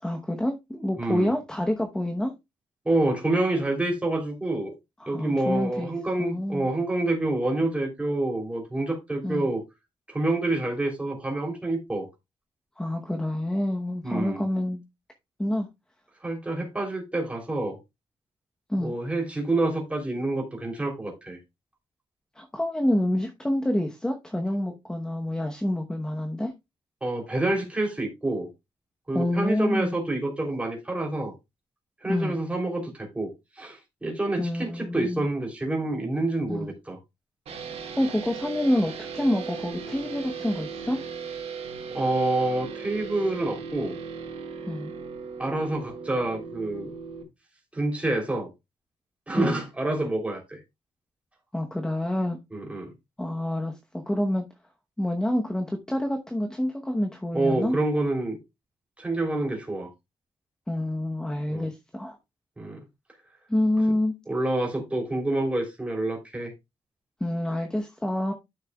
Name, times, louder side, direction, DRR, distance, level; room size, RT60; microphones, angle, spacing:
voice 1, 0.0-2.3 5.0-5.9 6.2-6.7 9.2-9.5 12.8-14.8 15.4-15.7 18.7-18.9 22.4-26.5 29.1-30.0 32.1-32.4 34.4-35.3 36.5-36.7 38.0-41.0 44.7-44.9 49.3-49.5 51.5-52.4 53.2-54.4 55.0-57.8 60.7-62.2 63.5-64.1 67.2-68.3, left 1 dB, 5° left, 0.9 m, -27 dB
voice 2, 1.0-1.3 2.8-4.7 5.1-9.6 10.1-12.1 14.0-14.4 16.2-17.8 18.8-21.4 27.0-28.5 29.1-31.3 32.0-33.3 33.6-37.0 41.9-44.0 45.4-46.9 47.7-48.5 49.3-50.6 52.5-52.9 57.3-58.4 59.0-59.9 61.5-61.7 62.6-62.8 64.3-66.5, right 2 dB, 10° right, 3.1 m, -27 dB
sound 1, 37.5-47.2, right 5 dB, 85° right, 3.2 m, -37 dB
12.0 x 6.6 x 2.3 m
wide cardioid pair, 160°, 11 cm